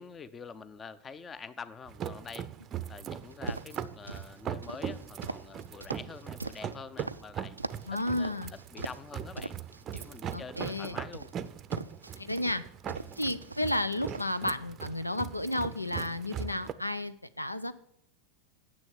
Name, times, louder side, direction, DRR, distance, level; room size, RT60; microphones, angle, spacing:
voice 1, 0.0-2.5 2.9-7.6 7.9-9.5 9.9-11.3 13.0-13.2, left 5 dB, 20° left, 17 dB, 0.6 m, -46 dB
sound 1, 1.9-16.7, right 9 dB, 30° right, 0.6 m, -40 dB
sound 2, 3.3-4.3 4.6-7.2 7.6-7.9 8.2-9.1 9.4-10.1 10.6-12.6 12.9-13.8 14.1-14.4, right 3 dB, 80° right, 0.4 m, -40 dB
voice 2, 7.9-8.5 10.3-11.0 12.2-12.6 13.2-17.8, left 1 dB, 85° left, 14 dB, 0.5 m, -32 dB
9.8 x 7.7 x 7.4 m, 0.71 s
figure-of-eight pair, 90°, 0 cm